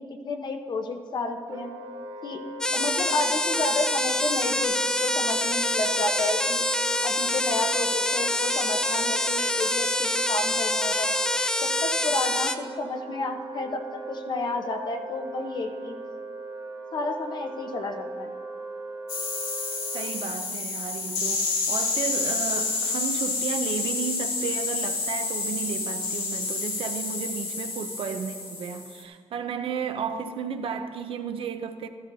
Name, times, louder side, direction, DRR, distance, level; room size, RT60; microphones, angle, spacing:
voice 1, 0.0-1.7 2.2-2.4 2.7-6.6 7.0-11.1 11.6-15.9 16.9-18.3, left 2 dB, 45° left, 0.8 m, -31 dB
Wind instrument woodwind instrument, 1.5-20.1, right 2 dB, 85° right, 1.7 m, -39 dB
sound 1, 2.6-12.6, left 1 dB, 5° left, 0.4 m, -26 dB
sound 2, 19.1-29.0, left 4 dB, 65° left, 2.8 m, -29 dB
voice 2, 19.9-31.9, right 6 dB, 65° right, 0.6 m, -33 dB
14.0 x 13.5 x 2.7 m
wide cardioid pair, 150°, 10 cm